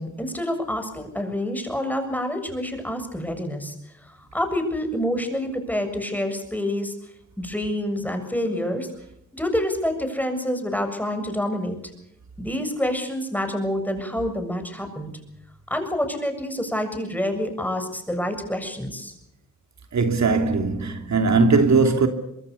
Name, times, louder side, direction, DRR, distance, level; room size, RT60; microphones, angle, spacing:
voice 1, 0.0-3.7 4.1-6.9 7.4-8.9 9.4-11.8 12.4-15.1 15.7-19.1, left 1 dB, 5° left, 7.2 m, -27 dB
voice 2, 19.9-22.1, right 4 dB, 65° right, 2.9 m, -19 dB
25.0 x 21.5 x 7.0 m
cardioid pair, 75°, 30 cm